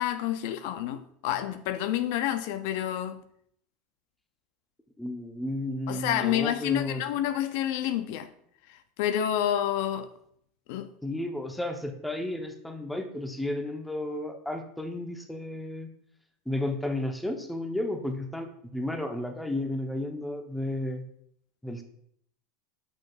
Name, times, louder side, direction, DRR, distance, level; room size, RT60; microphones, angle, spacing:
voice 1, 0.0-3.2 5.9-8.3 8.7-10.1 10.7-10.9, left 11 dB, 65° left, 0.4 m, -29 dB
voice 2, 5.0-7.0 11.0-15.9 16.5-21.0 21.6-21.8, left 1 dB, 5° left, 0.8 m, -33 dB
6.5 x 6.1 x 2.4 m
hypercardioid pair, 100°, 0 cm